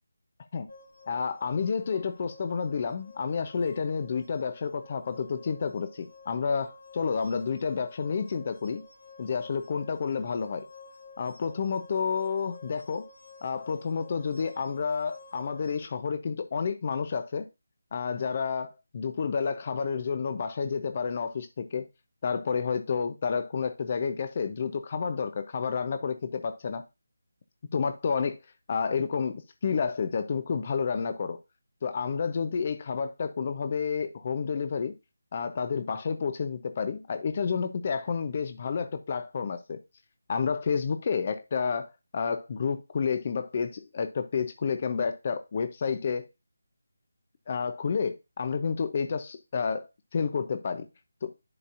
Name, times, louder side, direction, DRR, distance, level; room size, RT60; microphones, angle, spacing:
sound 1, 0.7-15.8, left 4 dB, 75° left, 2.5 m, -51 dB
voice 1, 1.1-8.8 9.2-10.6 11.2-13.1 13.4-17.5 17.9-21.9 22.2-26.9 27.7-28.4 28.7-31.4 31.8-34.9 35.3-39.8 40.3-46.3 47.5-50.9 51.2-51.3, left 5 dB, 35° left, 0.7 m, -30 dB
11.0 x 4.1 x 2.6 m
figure-of-eight pair, 155°, 0 cm